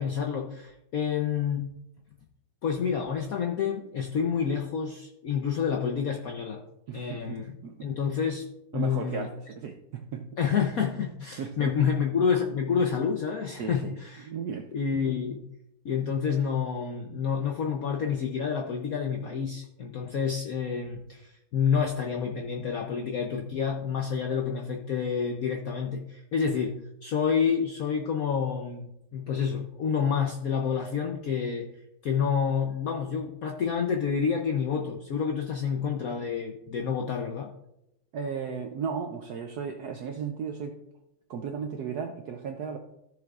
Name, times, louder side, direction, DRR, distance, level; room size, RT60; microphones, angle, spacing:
voice 1, 0.0-1.7 2.6-6.6 6.9-7.5 7.8-9.3 10.4-14.3 14.7-15.5 15.8-31.7 32.0-37.5, left 6 dB, 70° left, 2 dB, 0.8 m, -28 dB
voice 2, 6.9-7.9 8.7-10.3 11.4-11.7 13.6-13.9 14.3-14.7 38.1-40.8 41.3-42.8, right 6 dB, 75° right, 4 dB, 0.9 m, -35 dB
14.0 x 6.9 x 2.4 m, 0.86 s
omnidirectional pair, 2.3 m